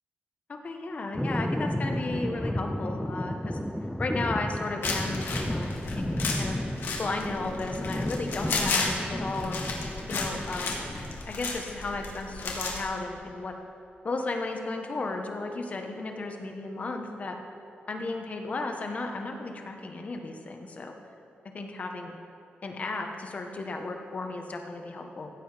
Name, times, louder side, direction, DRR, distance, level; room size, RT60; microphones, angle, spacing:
voice 1, 0.5-3.6 4.0-6.1 6.3-6.6 7.0-9.6 10.1-10.8 11.2-13.5 14.0-17.4 17.9-20.9 21.5-22.2 22.6-25.3, left 3 dB, 40° left, 4 dB, 1.2 m, -34 dB
sound 1, 1.1-11.2, equal, 5° left, 0.4 m, -33 dB
sound 2, 4.8-12.8, left 4 dB, 80° left, 1.9 m, -33 dB
16.0 x 7.9 x 5.1 m, 2.8 s
wide cardioid pair, 135°, 4 cm